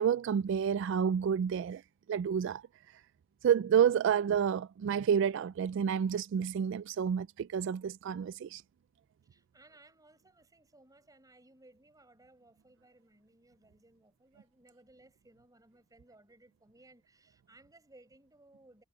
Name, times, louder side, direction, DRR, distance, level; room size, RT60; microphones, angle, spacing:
voice 1, 0.0-1.8 2.1-2.6 3.4-8.6, right 8 dB, 65° right, 0.3 m, -29 dB
voice 2, 9.2-18.8, right 2 dB, 20° right, 5.0 m, -61 dB
head